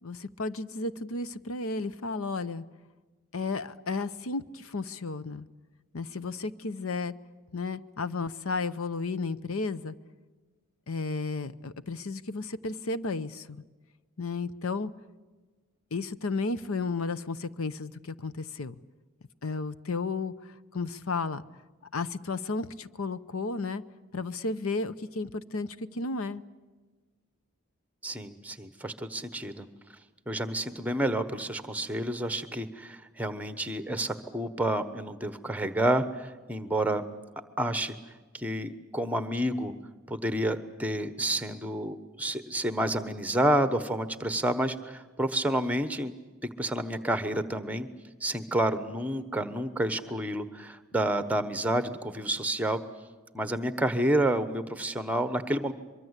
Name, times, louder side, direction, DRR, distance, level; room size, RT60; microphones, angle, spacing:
voice 1, 0.0-2.6 3.3-5.5 5.9-7.1 7.5-9.9 10.9-13.6 14.2-14.9 15.9-18.7 19.4-21.4 21.9-23.8 24.1-26.4, left 3 dB, 80° left, 15 dB, 0.8 m, -33 dB
voice 2, 28.0-29.6 30.3-37.0 37.6-37.9 38.3-39.7 40.1-46.1 46.6-47.9 48.2-52.8 53.3-55.7, right 1 dB, 5° right, 11 dB, 1.1 m, -29 dB
24.0 x 23.5 x 8.2 m, 1.3 s
head